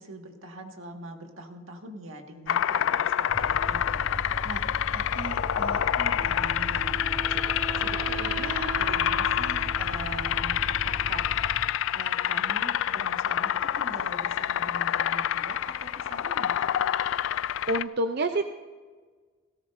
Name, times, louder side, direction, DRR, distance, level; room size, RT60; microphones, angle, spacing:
voice 1, 0.0-11.3 11.9-16.7, right 1 dB, 80° right, 3 dB, 1.8 m, -42 dB
sound 1, 2.5-17.8, left 10 dB, 70° left, 0.3 m, -27 dB
sound 2, 3.3-11.6, equal, 5° left, 3.9 m, -37 dB
Wind instrument woodwind instrument, 6.2-11.2, right 6 dB, 25° right, 2.2 m, -40 dB
voice 2, 17.7-18.5, right 1 dB, 50° right, 7 dB, 0.5 m, -26 dB
18.0 x 17.5 x 2.6 m, 1.4 s
head